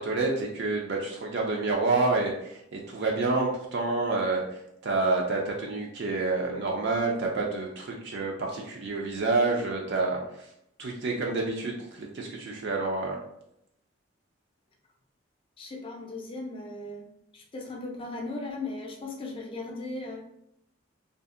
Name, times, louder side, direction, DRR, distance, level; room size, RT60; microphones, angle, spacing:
voice 1, 0.0-10.2 10.8-13.2, right 3 dB, 55° right, -1 dB, 0.3 m, -28 dB
voice 2, 15.6-17.1 17.3-20.2, left 2 dB, 25° left, 1 dB, 0.4 m, -37 dB
2.6 x 2.4 x 2.4 m, 0.78 s
head